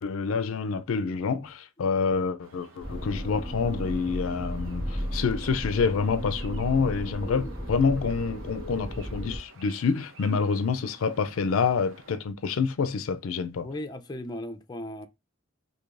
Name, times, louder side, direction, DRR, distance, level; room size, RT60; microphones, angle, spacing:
voice 1, 0.0-13.7, left 5 dB, 80° left, 0.4 m, -27 dB
sound 1, 2.4-12.2, right 3 dB, 75° right, 0.8 m, -53 dB
sound 2, 2.8-9.4, equal, 45° right, 1.8 m, -34 dB
voice 2, 13.6-15.1, left 1 dB, 20° left, 0.4 m, -36 dB
4.6 x 2.7 x 2.5 m
head